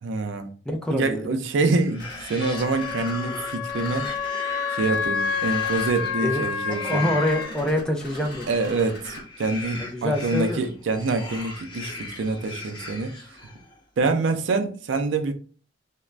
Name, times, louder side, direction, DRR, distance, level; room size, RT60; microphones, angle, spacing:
voice 1, 0.0-0.5 0.9-4.1 4.7-7.1 8.5-13.1 14.0-15.3, right 3 dB, 85° right, 0.4 m, -26 dB
voice 2, 0.7-1.2 6.2-6.4 6.7-8.5 9.8-10.6, left 1 dB, 5° left, 0.3 m, -25 dB
sound 1, 1.7-13.8, left 2 dB, 25° left, 1.0 m, -39 dB
sound 2, 2.0-3.1 3.7-4.3 4.8-5.1 5.4-6.2 7.3-9.2, left 2 dB, 55° left, 1.1 m, -43 dB
Wind instrument woodwind instrument, 2.4-7.5, left 7 dB, 80° left, 0.4 m, -29 dB
2.4 x 2.1 x 3.1 m
head